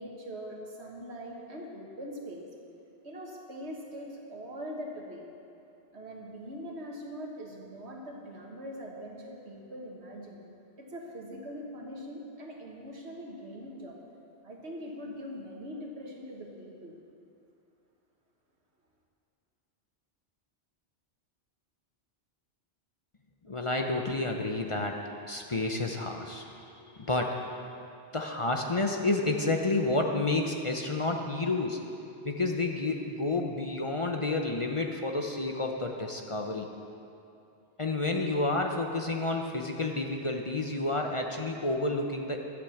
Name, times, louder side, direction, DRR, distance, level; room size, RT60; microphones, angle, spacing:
voice 1, 0.0-2.5 3.0-5.2 5.9-10.4 10.8-14.0 14.4-17.0, equal, 85° right, 0 dB, 1.8 m, -42 dB
voice 2, 23.4-27.5 28.1-31.8 32.2-36.7 37.8-42.4, left 2 dB, 35° left, 2 dB, 0.7 m, -30 dB
12.0 x 8.3 x 7.1 m, 2.7 s
omnidirectional pair, 1.1 m